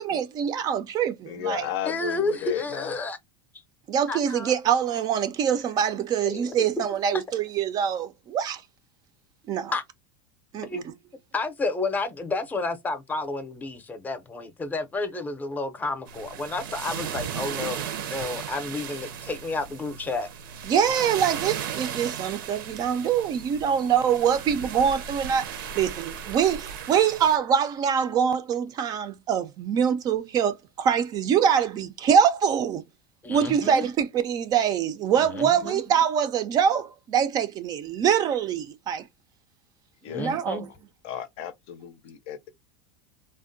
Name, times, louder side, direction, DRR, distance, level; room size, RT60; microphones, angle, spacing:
voice 1, 0.0-1.7 3.9-8.6 9.5-9.7 10.5-10.7 20.7-32.8 33.3-39.0 40.2-40.7, right 8 dB, 35° right, 0.4 m, -24 dB
voice 2, 1.3-2.9 40.0-40.4 41.0-42.5, left 10 dB, 55° left, 0.6 m, -34 dB
voice 3, 1.8-3.2 4.1-4.5 6.2-6.6 9.7-9.8 10.6-10.8 11.3-20.3 33.2-33.8 35.2-35.9 40.1-40.7, left 3 dB, 15° left, 0.6 m, -31 dB
sound 1, 16.1-27.4, right 8 dB, 85° right, 0.6 m, -36 dB
3.4 x 2.1 x 2.5 m
supercardioid pair, 125°, 11 cm